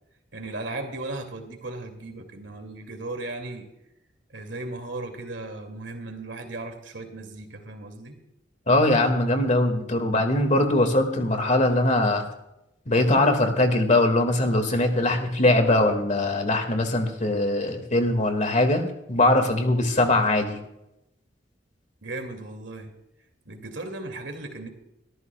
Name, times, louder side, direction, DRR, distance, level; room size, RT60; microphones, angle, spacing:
voice 1, 0.3-3.7 4.3-8.2 17.7-17.8 22.0-22.9 23.5-24.7, right 2 dB, 80° right, 4 dB, 2.5 m, -36 dB
voice 2, 8.7-12.2 12.9-20.6, left 1 dB, 45° left, 6 dB, 2.0 m, -21 dB
24.0 x 14.0 x 2.3 m, 0.87 s
head